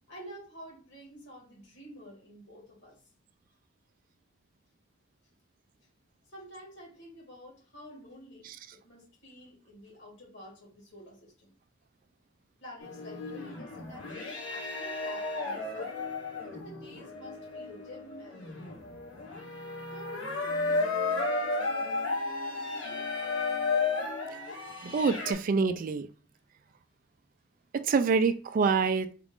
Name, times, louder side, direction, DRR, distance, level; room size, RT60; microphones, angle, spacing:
voice 1, 0.1-3.0 6.3-11.5 12.6-16.0 16.5-18.9 19.9-23.1, equal, 65° left, 2.0 m, -50 dB
sound 1, 12.8-25.3, left 3 dB, 85° left, 1.6 m, -33 dB
voice 2, 24.8-26.1 27.7-29.1, right 5 dB, 45° right, 0.3 m, -26 dB
4.0 x 2.4 x 3.5 m
head